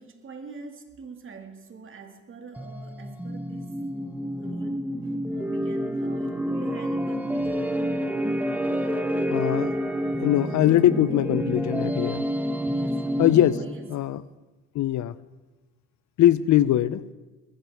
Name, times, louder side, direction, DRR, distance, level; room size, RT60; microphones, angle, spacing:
voice 1, 0.0-3.9 4.3-7.7 12.7-13.2 13.5-14.0 14.8-14.9, right 4 dB, 45° right, 5 dB, 2.0 m, -44 dB
sound 1, 2.6-13.9, equal, 5° right, 1.1 m, -28 dB
voice 2, 9.2-9.7 10.2-12.2 13.2-13.6 13.9-14.2 14.7-15.1 16.2-17.0, left 12 dB, 70° left, 17 dB, 0.6 m, -21 dB
21.0 x 14.0 x 3.5 m, 1.2 s
cardioid pair, 90°, 30 cm